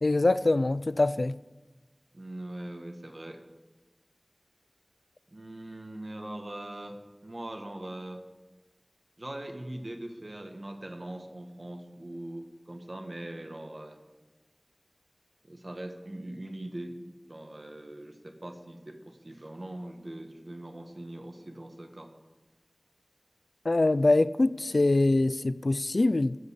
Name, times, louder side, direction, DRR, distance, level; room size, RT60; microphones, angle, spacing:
voice 1, 0.0-1.4 23.7-26.4, left 2 dB, 85° left, 0.3 m, -24 dB
voice 2, 2.1-3.4 5.3-8.2 9.2-14.0 15.4-17.0 17.3-22.1, right 1 dB, 55° right, 1.4 m, -41 dB
15.5 x 5.3 x 8.1 m
wide cardioid pair, 45°, 0 cm